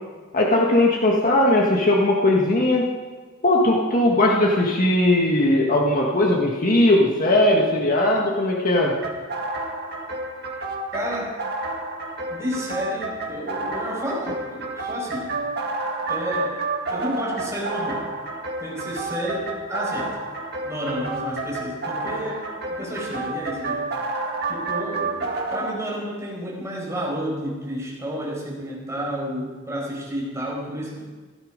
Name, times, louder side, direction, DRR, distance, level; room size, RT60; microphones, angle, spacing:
voice 1, 0.3-2.9 3.4-8.9, left 1 dB, 45° left, -1 dB, 1.7 m, -19 dB
sound 1, 9.0-25.7, right 2 dB, 55° right, 2.1 m, -30 dB
voice 2, 10.9-11.4 12.3-15.3 16.1-16.6 16.9-18.1 18.6-20.2 20.6-23.8 24.5-31.0, equal, 15° right, -4 dB, 5.2 m, -30 dB
16.5 x 13.0 x 5.2 m, 1.4 s
head